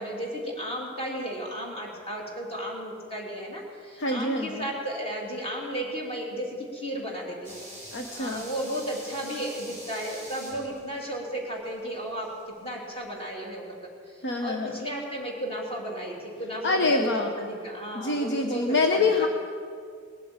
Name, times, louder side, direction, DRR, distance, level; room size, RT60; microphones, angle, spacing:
voice 1, 0.0-7.6 8.1-12.3 12.6-13.7 14.1-17.1 17.4-19.3, right 1 dB, 30° left, -1 dB, 3.1 m, -34 dB
voice 2, 4.0-4.7 7.9-8.5 14.2-14.8 16.6-17.4 17.9-19.3, left 3 dB, 55° left, 4 dB, 0.9 m, -26 dB
sound 1, 7.4-12.4 12.7-12.8, right 1 dB, 15° left, 3.5 m, -44 dB
19.0 x 8.4 x 8.9 m, 2.2 s
head